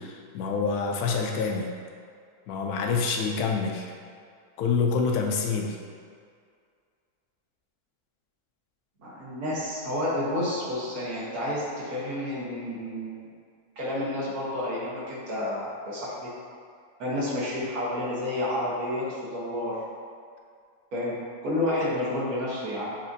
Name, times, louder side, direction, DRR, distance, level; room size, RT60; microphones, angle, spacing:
voice 1, 0.0-1.7 2.5-3.9 4.6-5.8, left 5 dB, 85° left, 1 dB, 1.1 m, -27 dB
voice 2, 9.0-13.3 13.8-16.3 17.0-19.8 20.9-21.2 21.4-22.9, left 1 dB, 85° right, -6 dB, 1.6 m, -30 dB
7.0 x 2.4 x 2.6 m, 2.2 s
omnidirectional pair, 1.5 m